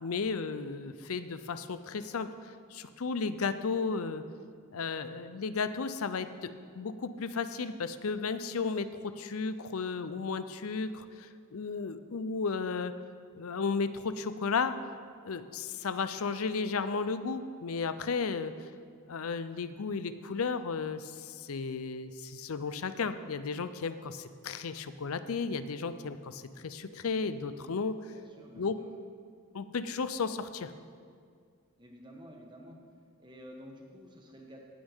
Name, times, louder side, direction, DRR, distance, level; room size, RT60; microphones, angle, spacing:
voice 1, 0.0-2.3 2.7-4.2 4.7-12.9 13.3-14.8 15.2-18.7 19.1-28.0 28.5-28.8 29.5-30.7, left 4 dB, 75° left, 12 dB, 0.6 m, -34 dB
voice 2, 28.1-28.9 31.8-32.8 33.2-34.6, equal, 20° right, 1 dB, 1.3 m, -50 dB
18.0 x 8.8 x 3.6 m, 2.1 s
head